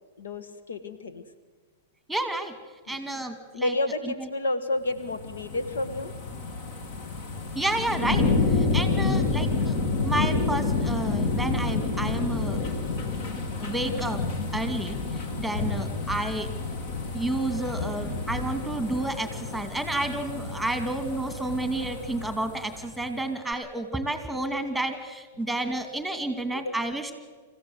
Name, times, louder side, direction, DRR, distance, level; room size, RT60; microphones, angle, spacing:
voice 1, 0.2-1.2 2.9-3.0 3.5-6.1 26.5-26.8, left 2 dB, 75° left, 10 dB, 1.6 m, -30 dB
voice 2, 2.1-2.5 2.9-3.7 4.0-4.3 7.5-8.3 8.5-9.8 10.0-12.6 13.6-14.2 14.5-15.0 15.4-16.5 17.1-27.1, right 2 dB, ahead, 9 dB, 2.5 m, -30 dB
sound 1, 4.9-23.1 23.5-23.6, left 3 dB, 50° left, 2.8 m, -29 dB
26.0 x 15.5 x 7.9 m, 1.4 s
figure-of-eight pair, 105°, 0 cm